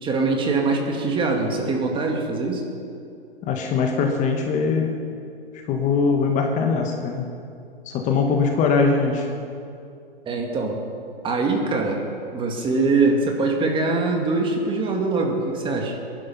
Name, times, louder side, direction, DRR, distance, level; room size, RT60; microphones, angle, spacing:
voice 1, 0.0-2.7 10.3-10.8 11.2-12.0 12.3-16.0, right 3 dB, 15° right, 2 dB, 2.0 m, -23 dB
voice 2, 3.4-5.0 5.7-7.2 7.8-9.3, left 5 dB, 25° left, 3 dB, 1.4 m, -21 dB
21.5 x 11.5 x 5.5 m, 2.5 s
hypercardioid pair, 130°, 31 cm